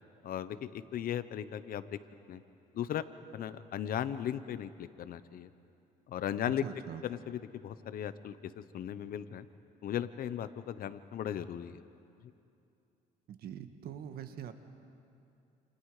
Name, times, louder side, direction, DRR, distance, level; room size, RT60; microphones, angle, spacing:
voice 1, 0.2-2.0 2.3-2.4 2.7-3.0 3.3-5.5 6.1-6.6 7.0-9.5 9.8-11.8, left 10 dB, 60° left, 13 dB, 1.0 m, -37 dB
voice 2, 6.6-7.0 13.3-14.5, right 9 dB, 65° right, 8 dB, 1.7 m, -43 dB
30.0 x 29.0 x 5.0 m, 2.6 s
cardioid pair, 110°, 17 cm